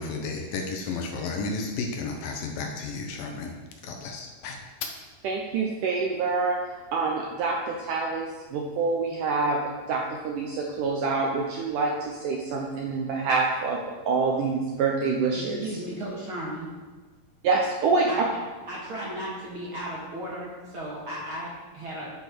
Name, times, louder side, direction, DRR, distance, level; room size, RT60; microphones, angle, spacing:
voice 1, 0.0-3.5 3.8-4.6, left 4 dB, 70° left, 2 dB, 2.4 m, -33 dB
voice 2, 5.2-6.6 6.9-15.6 17.4-18.1, right 4 dB, 75° right, 0 dB, 1.9 m, -26 dB
voice 3, 15.3-16.8 18.1-18.2 18.7-22.1, right 1 dB, 45° right, -5 dB, 1.8 m, -35 dB
10.5 x 5.5 x 6.3 m, 1.3 s
omnidirectional pair, 4.5 m